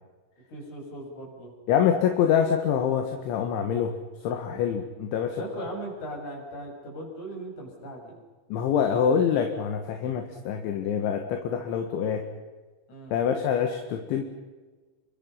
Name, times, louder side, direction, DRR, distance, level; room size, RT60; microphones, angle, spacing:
voice 1, 0.5-1.5 5.4-8.2 12.9-13.1, equal, 35° left, 0 dB, 8.4 m, -38 dB
voice 2, 1.7-3.9 4.2-5.4 8.5-12.3 13.1-14.2, left 8 dB, 70° left, 5 dB, 3.9 m, -25 dB
29.5 x 25.0 x 5.7 m, 1.3 s
omnidirectional pair, 5.9 m